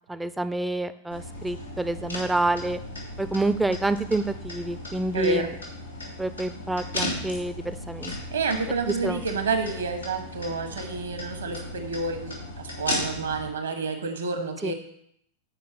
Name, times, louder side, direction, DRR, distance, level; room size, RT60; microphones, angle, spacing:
voice 1, 0.1-2.8 3.2-5.5 6.2-8.1 9.0-9.2 14.6-14.7, right 2 dB, 5° right, 12 dB, 0.4 m, -28 dB
sound 1, 1.1-13.5, left 1 dB, 85° left, 2.5 m, -36 dB
voice 2, 5.1-5.5 8.3-14.7, right 3 dB, 70° right, 7 dB, 1.3 m, -29 dB
8.1 x 4.6 x 6.0 m, 0.71 s
figure-of-eight pair, 90°, 0 cm